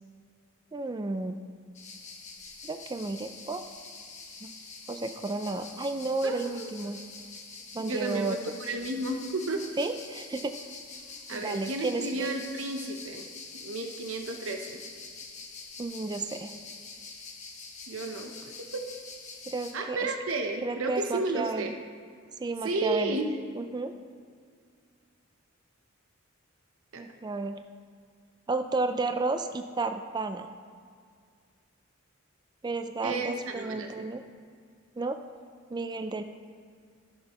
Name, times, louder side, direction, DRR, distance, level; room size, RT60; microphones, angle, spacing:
voice 1, 0.7-1.4 2.6-3.6 4.4-4.5 4.9-7.0 7.7-8.5 9.8-10.6 11.3-12.5 15.8-16.5 19.5-20.1 20.6-21.7 22.4-23.2 23.6-23.9 27.0-27.6 28.5-30.5 32.6-34.2 35.0-35.2 35.7-36.2, right 3 dB, 20° right, 7 dB, 0.3 m, -32 dB
sound 1, 1.7-19.7, left 4 dB, 35° left, 1.0 m, -45 dB
voice 2, 6.2-6.7 7.8-9.6 11.3-13.3 13.5-14.8 17.9-18.8 19.7-21.7 22.6-23.3 26.9-27.0 33.0-34.1, right 2 dB, 75° right, 4 dB, 0.8 m, -32 dB
14.5 x 6.6 x 3.0 m, 2.1 s
head